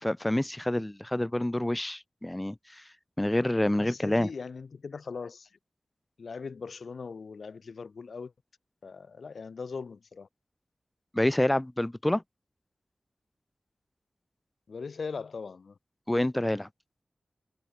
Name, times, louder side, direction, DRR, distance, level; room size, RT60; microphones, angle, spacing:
voice 1, 0.0-2.8 3.2-4.3 11.1-12.2 16.1-16.7, left 1 dB, 15° left, 1.0 m, -27 dB
voice 2, 3.7-5.5 6.2-8.3 8.8-10.3 14.7-15.8, left 5 dB, 80° left, 5.0 m, -40 dB
wide cardioid pair, 65°, 0 cm